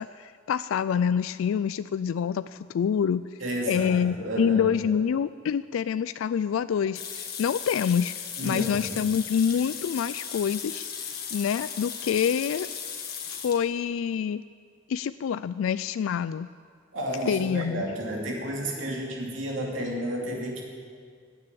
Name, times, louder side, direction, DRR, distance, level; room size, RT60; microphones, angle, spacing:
voice 1, 0.0-3.3 3.7-8.1 8.4-10.9 11.3-12.7 13.3-14.4 14.9-16.5 17.3-17.8, left 7 dB, 80° left, 15 dB, 0.3 m, -26 dB
voice 2, 3.4-4.7 8.4-9.1 16.9-20.6, right 1 dB, 70° right, -1 dB, 2.6 m, -32 dB
sound 1, 7.0-13.6, left 7 dB, 50° left, 1.8 m, -36 dB
16.0 x 9.8 x 8.6 m, 2.1 s
head